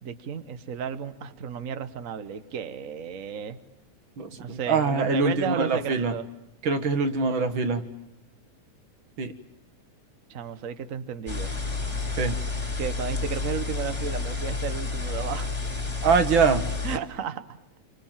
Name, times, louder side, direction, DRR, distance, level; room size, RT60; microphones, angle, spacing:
voice 1, 0.0-3.6 4.3-6.3 10.3-11.5 12.8-15.5 16.8-17.6, right 7 dB, 80° right, 11 dB, 0.7 m, -33 dB
voice 2, 4.2-6.1 6.6-7.8 9.2-9.3 12.1-12.4 16.0-16.6, right 4 dB, 45° right, 9 dB, 2.1 m, -24 dB
sound 1, 11.3-17.0, left 4 dB, 10° left, 2.1 m, -30 dB
28.5 x 25.0 x 7.5 m, 0.84 s
omnidirectional pair, 3.4 m